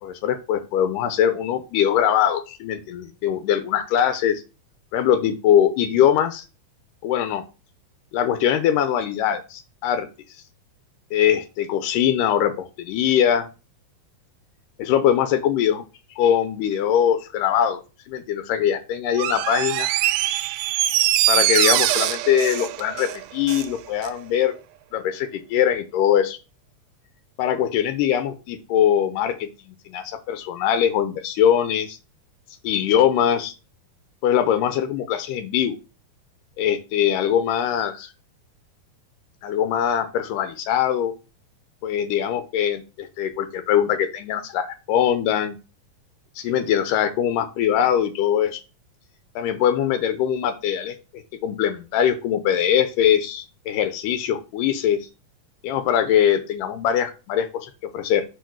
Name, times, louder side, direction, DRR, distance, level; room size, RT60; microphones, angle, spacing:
voice 1, 0.0-4.4 4.9-6.4 7.0-7.4 8.1-10.1 11.1-13.5 14.8-15.8 16.2-17.8 18.1-19.9 21.3-24.5 24.9-26.4 27.4-32.0 32.6-33.5 34.2-35.8 36.6-38.1 39.4-41.1 41.8-45.6 46.4-48.6 49.4-51.0 51.4-55.1 55.6-58.2, left 9 dB, 90° left, 9 dB, 2.3 m, -22 dB
Door, 19.1-23.7 24.0-24.1, right 13 dB, 80° right, 1.9 m, -22 dB
4.8 x 4.7 x 6.0 m, 0.31 s
omnidirectional pair, 3.8 m